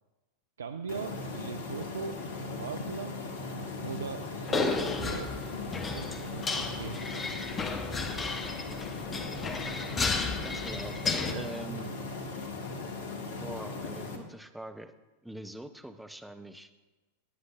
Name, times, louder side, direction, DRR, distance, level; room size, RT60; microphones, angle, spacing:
voice 1, 0.6-3.2 3.8-5.3 5.9-7.6 11.2-12.0, right 5 dB, 70° right, 7 dB, 0.4 m, -40 dB
sound 1, 0.9-14.2, left 3 dB, 55° left, 1.4 m, -38 dB
sound 2, 4.5-11.3, left 4 dB, 20° left, 1.0 m, -33 dB
voice 2, 9.5-11.0 11.3-11.9 13.4-14.9 15.2-16.7, right 1 dB, ahead, 7 dB, 0.7 m, -44 dB
18.5 x 9.6 x 2.4 m, 1.2 s
figure-of-eight pair, 90°, 0 cm